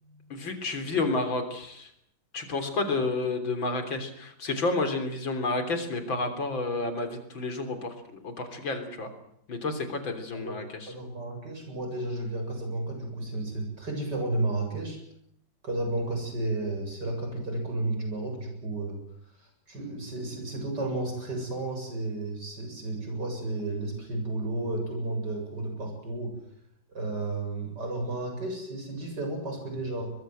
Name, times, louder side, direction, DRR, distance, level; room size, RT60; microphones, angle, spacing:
voice 1, 0.3-1.9 2.3-9.1 9.5-10.9, left 3 dB, 90° left, 8 dB, 4.3 m, -30 dB
voice 2, 10.9-15.0 15.6-19.0 19.7-26.4 26.9-30.1, right 2 dB, 60° right, 3 dB, 8.2 m, -32 dB
24.0 x 21.5 x 7.8 m, 0.69 s
omnidirectional pair, 2.1 m